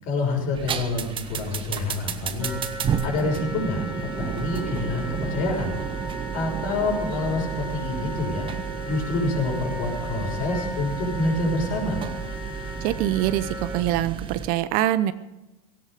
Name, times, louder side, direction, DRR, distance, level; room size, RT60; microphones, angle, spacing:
voice 1, 0.0-2.6 3.0-3.8 4.2-5.8 6.3-8.5 8.8-12.0, left 2 dB, 45° left, 1 dB, 6.2 m, -27 dB
sound 1, 0.5-14.5, right 7 dB, 25° right, 1.2 m, -32 dB
Wind instrument woodwind instrument, 2.4-13.8, equal, 10° right, 3.4 m, -37 dB
voice 2, 12.8-15.1, right 13 dB, 50° right, 14 dB, 0.8 m, -24 dB
17.5 x 15.5 x 5.0 m, 0.99 s
hypercardioid pair, 120°, 20 cm